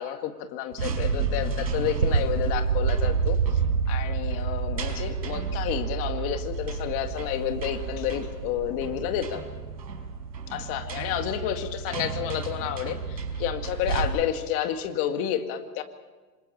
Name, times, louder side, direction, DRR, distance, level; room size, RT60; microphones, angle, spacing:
voice 1, 0.0-3.6 3.9-9.4 10.5-15.8, left 10 dB, 25° left, 6 dB, 1.9 m, -30 dB
sound 1, 0.7-14.0, right 5 dB, 85° right, 5.2 m, -29 dB
sound 2, 3.6-14.0, equal, 50° right, 6.7 m, -49 dB
27.0 x 26.5 x 4.4 m, 1.3 s
hypercardioid pair, 150°, 50 cm